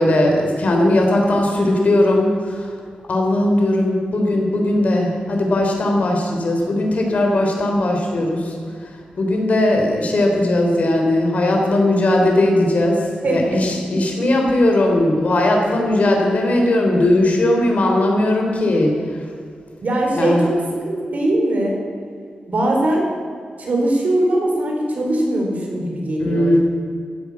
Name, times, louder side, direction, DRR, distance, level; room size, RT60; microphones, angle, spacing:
voice 1, 0.0-2.7 3.1-8.5 9.2-18.9 20.1-20.4 26.2-26.6, left 1 dB, 55° left, 1 dB, 3.9 m, -18 dB
voice 2, 13.2-13.6 19.8-20.6 20.8-21.8 22.5-23.1 23.6-26.6, right 1 dB, 60° right, 0 dB, 4.4 m, -20 dB
15.0 x 11.0 x 8.6 m, 2.2 s
wide cardioid pair, 115°, 3 cm